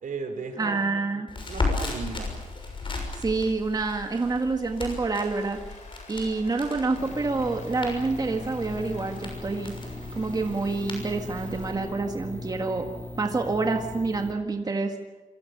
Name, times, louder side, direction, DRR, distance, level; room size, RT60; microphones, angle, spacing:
voice 1, 0.0-2.3, right 4 dB, 80° right, 6 dB, 4.3 m, -36 dB
voice 2, 0.6-1.3 3.1-5.6 6.1-9.7 10.2-12.9 13.2-14.9, right 3 dB, 30° right, 4 dB, 1.7 m, -27 dB
Crackle, 1.3-11.7, left 3 dB, 40° left, 6.4 m, -36 dB
Applause, 4.5-12.1, left 3 dB, 60° left, 4.6 m, -51 dB
sound 1, 7.0-14.3, left 1 dB, 15° left, 5.6 m, -39 dB
27.5 x 23.5 x 6.8 m, 1.2 s
wide cardioid pair, 170°, 13 cm